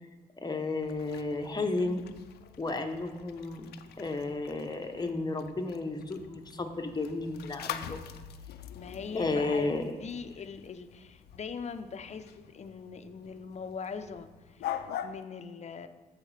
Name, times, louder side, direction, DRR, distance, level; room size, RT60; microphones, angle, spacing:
voice 1, 0.4-2.1 2.6-3.7 4.0-8.0 9.1-9.9, left 3 dB, 25° left, 5 dB, 1.0 m, -33 dB
sound 1, 0.8-15.2, left 10 dB, 85° left, 0.4 m, -44 dB
voice 2, 8.7-9.7 10.0-15.9, left 5 dB, 45° left, 9 dB, 0.6 m, -41 dB
14.0 x 4.9 x 3.3 m, 1.2 s
cardioid pair, 65°, 16 cm